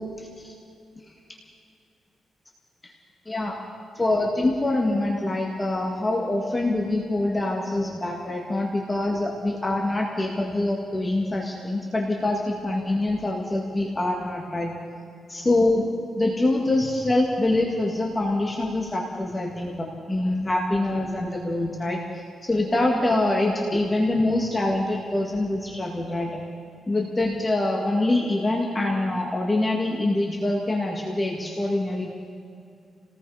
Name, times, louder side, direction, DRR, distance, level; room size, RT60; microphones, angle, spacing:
voice 1, 3.3-3.6 4.0-14.7 15.3-15.9 16.2-26.4 26.9-32.1, left 2 dB, 15° left, -1 dB, 2.1 m, -25 dB
29.5 x 19.0 x 5.0 m, 2.5 s
wide cardioid pair, 160°, 0 cm